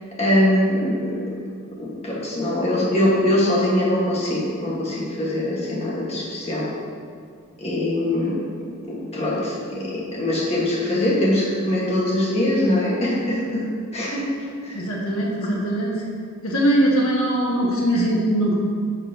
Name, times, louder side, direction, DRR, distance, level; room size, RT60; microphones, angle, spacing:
voice 1, 0.2-1.2 1.8-6.6 7.6-8.3 8.9-13.6 13.9-14.2 14.6-14.7, left 1 dB, 30° left, -6 dB, 1.5 m, -22 dB
voice 2, 14.7-16.0 16.4-18.5, right 1 dB, 75° left, -3 dB, 1.4 m, -21 dB
10.5 x 6.6 x 2.8 m, 2.1 s
head